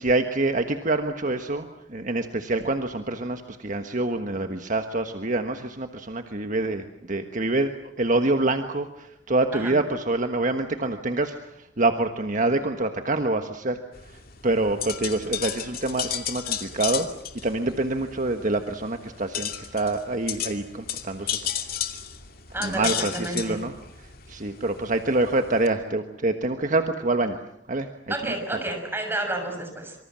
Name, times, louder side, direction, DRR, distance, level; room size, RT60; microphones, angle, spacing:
voice 1, 0.0-7.7 8.0-17.1 17.4-21.6 22.6-23.7 24.0-27.4 27.7-28.1, right 2 dB, 45° right, 6 dB, 1.4 m, -26 dB
sound 1, 13.9-25.7, left 9 dB, 55° left, 2.5 m, -34 dB
voice 2, 22.5-23.6 28.1-30.0, right 1 dB, 15° right, 4 dB, 6.6 m, -30 dB
26.0 x 25.0 x 7.6 m, 0.76 s
head